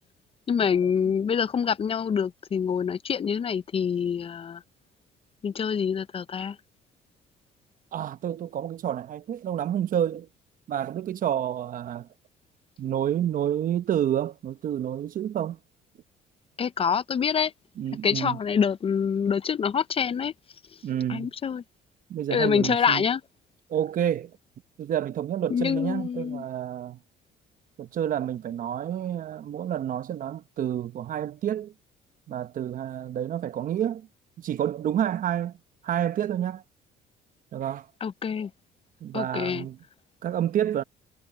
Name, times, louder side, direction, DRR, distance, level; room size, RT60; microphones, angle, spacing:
voice 1, 0.5-4.6 5.4-6.6 16.6-17.5 18.0-20.3 21.1-21.6 22.3-23.2 25.5-26.4 38.0-38.5 39.1-39.7, left 7 dB, 35° left, 0.6 m, -26 dB
voice 2, 7.9-10.3 10.7-12.1 12.8-15.6 17.8-18.4 20.8-21.3 22.1-23.0 23.7-24.3 24.8-27.0 27.8-31.7 32.3-34.1 34.4-35.6 35.8-36.6 37.5-37.9 39.0-39.8 40.2-40.8, right 10 dB, 55° right, 1.0 m, -29 dB
cardioid pair, 110°, 17 cm